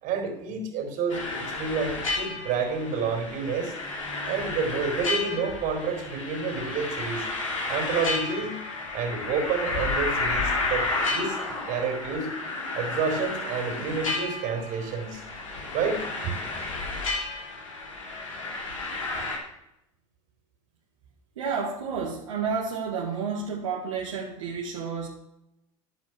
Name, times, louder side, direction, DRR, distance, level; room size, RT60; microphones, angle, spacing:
voice 1, 0.0-3.7 4.2-7.3 7.7-8.6 8.9-12.3 12.7-15.2 15.7-16.3, right 5 dB, 55° right, 4 dB, 4.0 m, -29 dB
sound 1, 1.1-19.4, left 3 dB, 90° left, 3.5 m, -31 dB
voice 2, 21.4-25.1, right 5 dB, 80° right, -4 dB, 2.0 m, -30 dB
10.5 x 8.4 x 6.1 m, 0.83 s
hypercardioid pair, 80°, 16 cm